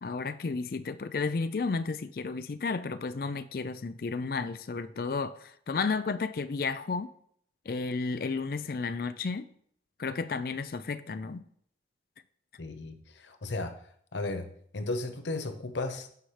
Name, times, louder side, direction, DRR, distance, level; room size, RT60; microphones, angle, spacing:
voice 1, 0.0-7.1 7.7-9.5 10.0-11.4, left 4 dB, 55° left, 0.4 m, -32 dB
voice 2, 12.6-13.8 14.1-14.5 14.7-16.1, left 2 dB, 90° left, 0.8 m, -34 dB
16.0 x 5.7 x 3.3 m
head